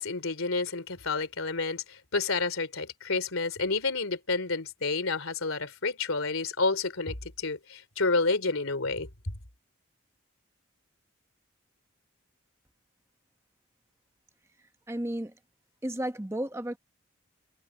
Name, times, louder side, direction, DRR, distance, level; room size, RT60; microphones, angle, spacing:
voice 1, 0.0-9.1, left 3 dB, 90° left, 3.3 m, -30 dB
voice 2, 14.9-15.3 15.8-16.8, right 1 dB, 15° right, 0.9 m, -33 dB
head